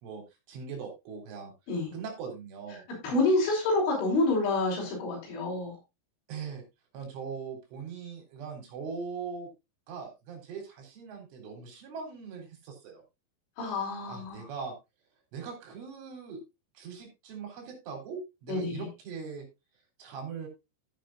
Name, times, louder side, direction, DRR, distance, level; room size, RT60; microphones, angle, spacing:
voice 1, 0.0-1.5 1.9-2.9 6.3-6.6 6.9-9.5 9.9-13.0 14.1-14.8 15.3-16.4 16.8-19.5 20.0-20.5, right 5 dB, 80° right, 3 dB, 6.1 m, -40 dB
voice 2, 3.0-5.8 13.6-14.5 18.5-18.9, left 2 dB, 75° left, -4 dB, 6.9 m, -28 dB
14.0 x 9.2 x 2.4 m, 0.24 s
omnidirectional pair, 5.5 m